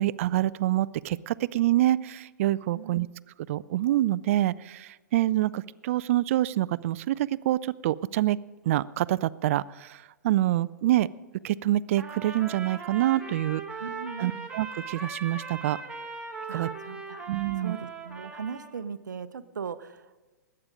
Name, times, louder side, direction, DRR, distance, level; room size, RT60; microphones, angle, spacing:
voice 1, 0.0-3.1 3.5-8.4 8.7-11.1 11.4-13.6 14.2-15.8 16.5-16.7 17.3-17.8, right 14 dB, 45° right, 19 dB, 0.4 m, -26 dB
Trumpet, 12.0-18.7, right 4 dB, 10° right, 1.4 m, -39 dB
voice 2, 13.8-14.5 16.5-17.3 17.6-20.1, right 6 dB, 75° right, 13 dB, 0.7 m, -39 dB
20.5 x 8.7 x 5.1 m, 1.3 s
figure-of-eight pair, 115°, 10 cm